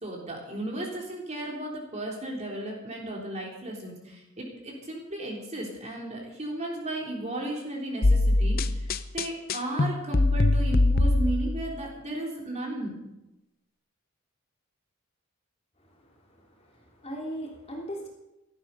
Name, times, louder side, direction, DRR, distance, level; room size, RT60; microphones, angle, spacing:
voice 1, 0.0-8.9 9.1-12.9, right 1 dB, 35° right, -1 dB, 3.6 m, -35 dB
sound 1, 8.0-11.7, left 2 dB, 45° left, 0.7 m, -23 dB
voice 2, 15.8-18.1, equal, 30° left, -1 dB, 3.0 m, -39 dB
16.0 x 12.0 x 5.5 m, 0.95 s
head